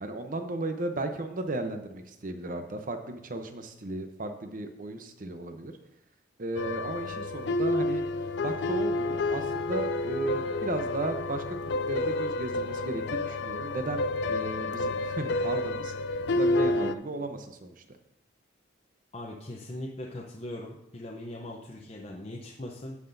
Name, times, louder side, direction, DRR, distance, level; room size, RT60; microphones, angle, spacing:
voice 1, 0.0-5.7 6.4-8.0 8.4-15.9 16.4-17.8, right 2 dB, 45° right, 7 dB, 0.8 m, -35 dB
sound 1, 6.6-16.9, left 2 dB, 60° left, 0.4 m, -29 dB
voice 2, 19.1-23.0, left 1 dB, 30° left, -2 dB, 0.7 m, -40 dB
16.5 x 5.8 x 2.6 m, 0.86 s
head